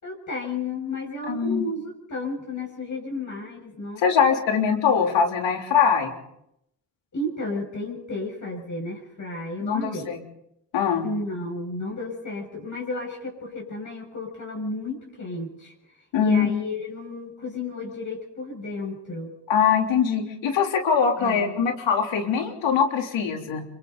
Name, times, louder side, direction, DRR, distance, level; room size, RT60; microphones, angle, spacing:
voice 1, 0.0-4.1 7.1-10.1 11.0-15.7 16.2-19.3 21.2-21.6, left 2 dB, 40° left, -1 dB, 6.9 m, -33 dB
voice 2, 1.3-1.7 4.0-6.1 9.6-10.2 10.7-11.1 16.1-16.5 19.5-23.6, left 6 dB, 80° left, 3 dB, 3.5 m, -22 dB
27.5 x 23.5 x 4.1 m, 0.78 s
cardioid pair, 70°, 45 cm